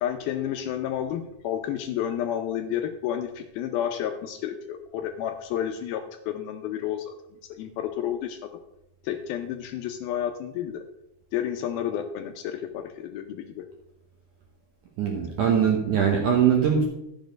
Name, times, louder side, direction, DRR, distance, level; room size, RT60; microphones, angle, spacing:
voice 1, 0.0-7.1 7.6-8.4 9.0-10.8 11.3-13.7, left 10 dB, 85° left, 5 dB, 2.1 m, -31 dB
voice 2, 15.0-16.8, right 8 dB, 75° right, 1 dB, 1.8 m, -21 dB
11.5 x 7.2 x 5.1 m, 0.85 s
omnidirectional pair, 5.1 m